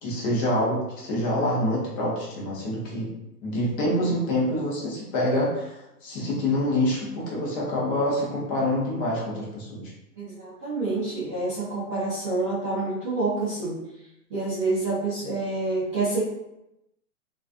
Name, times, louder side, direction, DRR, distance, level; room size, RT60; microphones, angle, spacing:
voice 1, 0.0-3.1 3.4-9.9, left 1 dB, 35° left, -5 dB, 0.8 m, -26 dB
voice 2, 10.2-13.8 14.3-16.2, right 3 dB, 20° right, -11 dB, 0.4 m, -27 dB
2.4 x 2.4 x 2.4 m, 0.89 s
hypercardioid pair, 130°, 47 cm